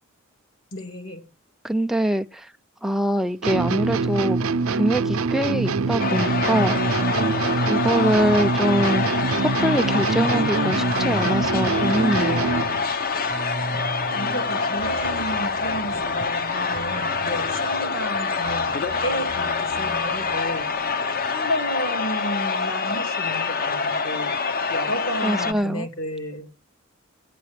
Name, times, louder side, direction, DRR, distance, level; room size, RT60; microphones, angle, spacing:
voice 1, 0.7-1.2 14.1-20.7 21.3-24.3 24.7-26.5, equal, 70° left, 2.8 m, -32 dB
voice 2, 1.6-2.5 2.8-4.4 4.7-6.8 7.7-12.5 25.2-25.9, right 1 dB, ahead, 0.5 m, -23 dB
sound 1, 3.4-12.8, right 4 dB, 80° right, 0.6 m, -24 dB
sound 2, 6.0-25.5, left 4 dB, 45° left, 0.8 m, -26 dB
sound 3, 6.4-21.9, right 2 dB, 45° right, 0.7 m, -38 dB
17.5 x 9.4 x 3.2 m
head